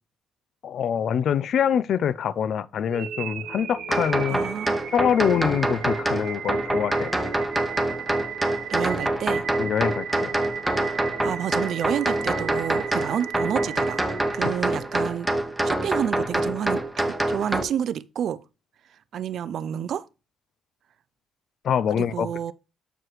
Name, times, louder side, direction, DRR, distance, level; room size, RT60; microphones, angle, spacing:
voice 1, 0.6-4.4 4.9-7.1 9.6-10.3 21.6-22.3, left 8 dB, 65° left, 0.4 m, -24 dB
sound 1, 2.9-14.9, right 8 dB, 80° right, 1.0 m, -36 dB
sound 2, 3.9-17.6, right 1 dB, 10° right, 0.9 m, -26 dB
voice 2, 4.3-4.8 8.7-9.5 11.2-14.0 14.3-15.3 15.6-18.4 19.1-20.1 21.9-22.5, right 9 dB, 65° right, 0.4 m, -29 dB
7.7 x 4.7 x 3.1 m
cardioid pair, 90°, 0 cm